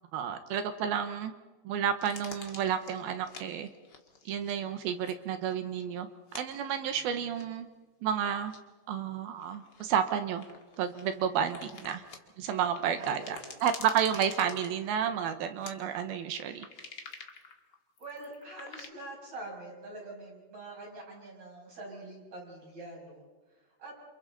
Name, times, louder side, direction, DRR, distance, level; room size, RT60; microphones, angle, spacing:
voice 1, 0.1-1.3 1.6-3.7 4.3-7.7 8.0-8.5 8.9-10.4 10.8-12.0 12.4-16.7, right 8 dB, 70° right, 8 dB, 2.9 m, -31 dB
sound 1, 2.0-4.5 4.8-5.2 5.5-5.8 6.3-6.4 7.3-7.7 8.5-8.6 9.4-12.2 12.6-15.1 15.6-15.7 16.2-18.9, left 4 dB, 45° left, 1.5 m, -48 dB
voice 2, 6.9-7.4 13.0-13.6 18.0-23.2 23.8-23.9, right 2 dB, 40° right, -2 dB, 7.4 m, -45 dB
29.0 x 28.0 x 4.2 m, 1.3 s
omnidirectional pair, 4.8 m